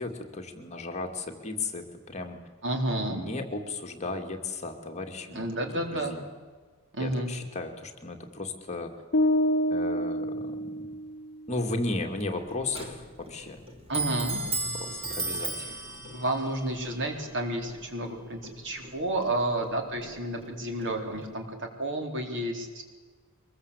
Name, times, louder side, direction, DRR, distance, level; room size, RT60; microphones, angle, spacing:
voice 1, 0.0-2.4 3.1-6.2 7.0-8.9 9.7-10.8 11.5-13.6 14.7-15.7, left 2 dB, 30° left, 3 dB, 2.4 m, -35 dB
voice 2, 2.6-3.2 5.3-6.1 6.9-7.3 13.9-14.4 16.1-22.8, right 1 dB, 55° right, 4 dB, 3.9 m, -31 dB
sound 1, 9.1-11.3, equal, 50° left, 1.1 m, -27 dB
Clock, 12.1-21.4, right 3 dB, 25° right, 3.0 m, -37 dB
23.5 x 21.5 x 8.3 m, 1.5 s
head